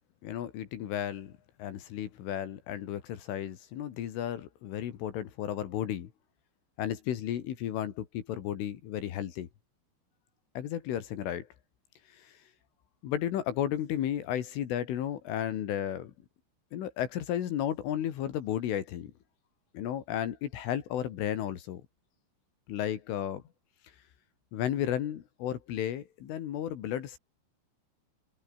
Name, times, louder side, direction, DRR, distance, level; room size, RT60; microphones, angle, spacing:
voice 1, 0.2-6.1 6.8-9.5 10.6-11.5 12.1-12.4 13.0-16.1 16.7-19.1 19.7-21.8 22.7-23.4 24.5-27.2, left 10 dB, 70° left, 4.6 m, -33 dB
omnidirectional pair, 6.0 m